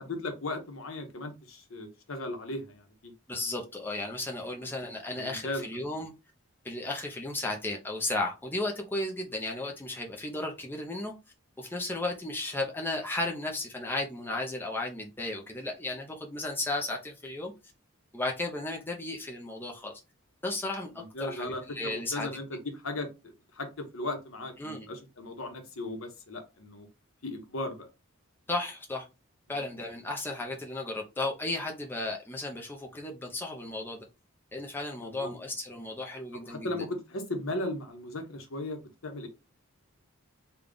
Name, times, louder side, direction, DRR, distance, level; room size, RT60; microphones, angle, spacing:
voice 1, 0.0-3.1 4.6-4.8 5.2-5.7 20.9-26.9 27.2-27.9 29.5-29.7 35.0-35.3 36.5-39.3, left 2 dB, 70° left, 5 dB, 0.9 m, -37 dB
voice 2, 3.3-6.1 6.6-11.1 11.6-17.5 18.1-19.9 20.4-22.3 24.6-24.9 28.5-29.1 29.5-34.1 34.5-36.7, left 2 dB, 10° left, 0 dB, 0.5 m, -34 dB
3.4 x 2.3 x 3.7 m, 0.27 s
head